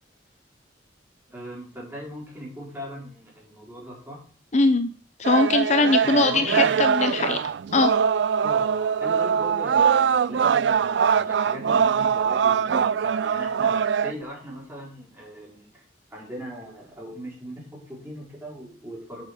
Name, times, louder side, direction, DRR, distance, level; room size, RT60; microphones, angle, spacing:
voice 1, 1.3-4.2 5.8-6.9 8.4-15.8 16.1-19.2, equal, 15° right, -4 dB, 4.6 m, -39 dB
voice 2, 4.5-4.9 5.2-7.4 7.7-7.9, left 3 dB, 40° left, 9 dB, 0.7 m, -21 dB
sound 1, 5.2-14.1, right 7 dB, 75° right, 0.4 m, -22 dB
8.2 x 6.4 x 6.8 m, 0.44 s
head